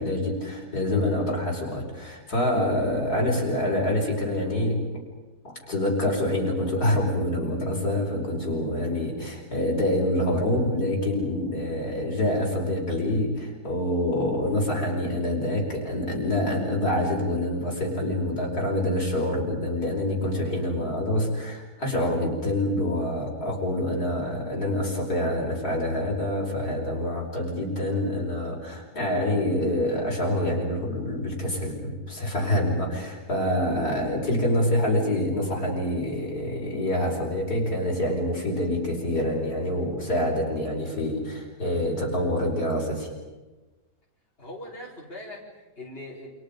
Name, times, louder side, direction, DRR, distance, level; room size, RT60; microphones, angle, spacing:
voice 1, 0.0-4.9 5.7-43.1, left 1 dB, 70° left, -3 dB, 5.4 m, -26 dB
voice 2, 44.4-46.3, left 1 dB, 35° left, -5 dB, 4.5 m, -41 dB
29.0 x 27.5 x 5.3 m, 1.2 s
omnidirectional pair, 1.7 m